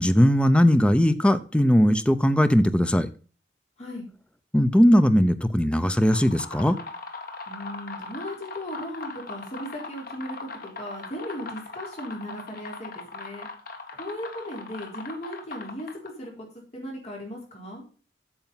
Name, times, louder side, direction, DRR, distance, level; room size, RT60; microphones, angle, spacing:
voice 1, 0.0-3.1 4.5-6.8, equal, 5° left, 11 dB, 0.6 m, -19 dB
sound 1, 5.9-16.2, left 3 dB, 55° left, 1.7 m, -40 dB
voice 2, 7.5-13.5 13.9-16.3 16.7-17.8, equal, 40° left, -2 dB, 4.2 m, -37 dB
8.9 x 7.0 x 5.6 m, 0.37 s
head